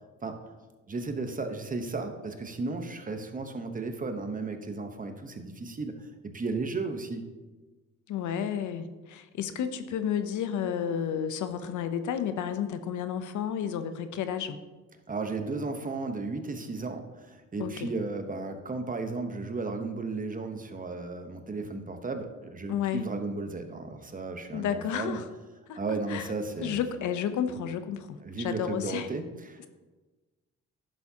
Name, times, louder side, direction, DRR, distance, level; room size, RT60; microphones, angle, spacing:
voice 1, 0.9-6.1 6.3-7.3 15.1-25.2 25.7-26.8 28.2-29.7, right 3 dB, 25° right, 6 dB, 0.9 m, -34 dB
voice 2, 8.1-14.6 17.6-17.9 22.7-23.1 24.5-25.3 25.7-26.3 26.6-29.1, left 8 dB, 75° left, 10 dB, 0.7 m, -31 dB
10.5 x 7.1 x 2.8 m, 1.2 s
cardioid pair, 90°, 30 cm